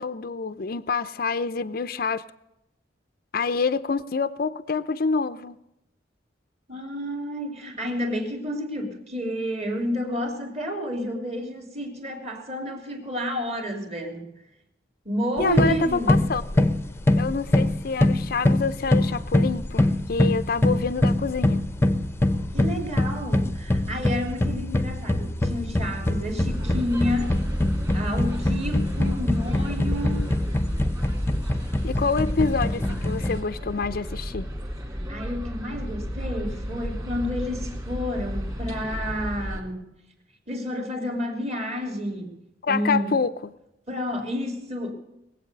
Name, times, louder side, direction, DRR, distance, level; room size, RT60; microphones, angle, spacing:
voice 1, 0.0-2.2 3.3-5.6 15.4-16.7 17.2-21.7 31.8-34.5 42.6-43.5, left 4 dB, 50° left, 12 dB, 0.5 m, -27 dB
voice 2, 6.7-14.3 15.0-16.2 22.5-27.4 27.9-30.3 35.1-39.9 40.5-42.4 42.7-43.1 43.9-44.9, equal, 35° right, 4 dB, 2.9 m, -30 dB
sound 1, 15.4-33.4, left 1 dB, 15° left, 0.7 m, -24 dB
sound 2, 26.4-39.6, equal, 20° right, 2.4 m, -32 dB
20.5 x 8.2 x 6.6 m, 0.88 s
head